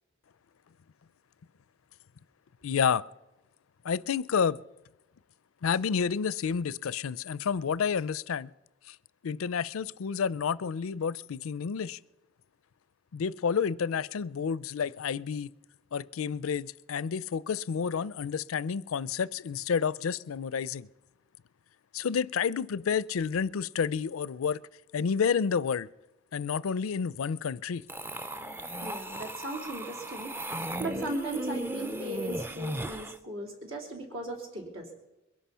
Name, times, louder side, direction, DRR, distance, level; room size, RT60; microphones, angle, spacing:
voice 1, 2.6-3.0 3.8-4.6 5.6-8.5 8.9-9.0 9.2-12.0 13.1-15.5 15.9-20.9 21.9-24.6 24.9-25.9 26.3-27.8, left 6 dB, 85° left, 0.4 m, -30 dB
sound 1, 27.9-33.2, right 1 dB, 10° right, 0.4 m, -36 dB
voice 2, 28.8-30.3 30.8-34.9, right 1 dB, 70° right, 3.5 m, -37 dB
22.0 x 11.5 x 5.6 m
head